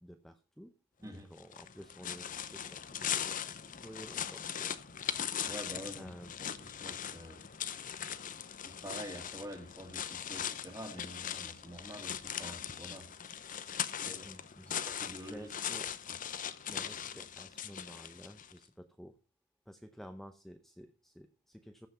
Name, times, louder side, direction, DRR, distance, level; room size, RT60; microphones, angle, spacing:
voice 1, 0.0-5.1 5.4-5.7 6.0-6.3 7.8-8.1 14.1-14.9 15.3-15.9 16.7-19.2 19.7-21.9, equal, ahead, 7 dB, 0.7 m, -52 dB
sound 1, 1.4-18.6, left 9 dB, 45° left, 0.7 m, -40 dB
voice 2, 5.5-6.1 6.4-7.4 8.6-13.1 14.0-14.3 14.9-15.5, equal, 15° right, 5 dB, 2.2 m, -47 dB
15.0 x 5.8 x 5.6 m, 0.35 s
head